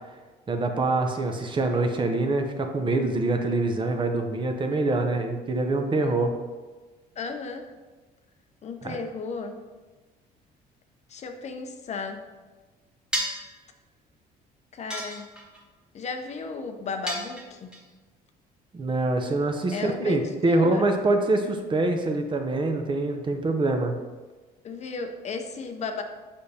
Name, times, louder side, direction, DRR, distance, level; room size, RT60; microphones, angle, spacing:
voice 1, 0.5-6.3 8.8-9.0 18.7-23.9, right 2 dB, 30° right, 4 dB, 0.7 m, -25 dB
voice 2, 7.2-7.7 8.6-9.6 11.1-12.2 14.7-15.3 15.9-17.8 19.7-20.9 24.6-26.0, left 4 dB, 40° left, 6 dB, 0.6 m, -34 dB
sound 1, 13.1-13.5 14.9-15.6 17.1-17.8, equal, 5° right, 1.1 m, -31 dB
6.7 x 5.2 x 2.8 m, 1.3 s
cardioid pair, 110°, 17 cm